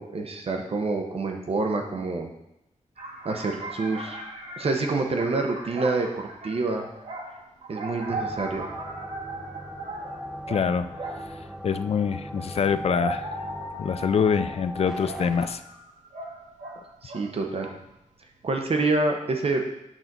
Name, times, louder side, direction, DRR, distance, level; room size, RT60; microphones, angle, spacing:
voice 1, 0.0-2.3 3.2-4.2 4.6-6.9 7.7-8.6 17.0-17.7 18.4-19.6, right 3 dB, 50° right, 3 dB, 0.8 m, -27 dB
sound 1, 3.0-11.4 12.5-17.3 17.6-18.0, right 2 dB, 70° right, 1.6 m, -38 dB
sound 2, 8.1-15.5, equal, 5° right, 0.7 m, -38 dB
voice 2, 10.5-10.9 11.6-13.3 13.8-15.6, left 6 dB, 50° left, 11 dB, 0.4 m, -25 dB
8.9 x 4.0 x 6.0 m, 0.85 s
wide cardioid pair, 165°, 13 cm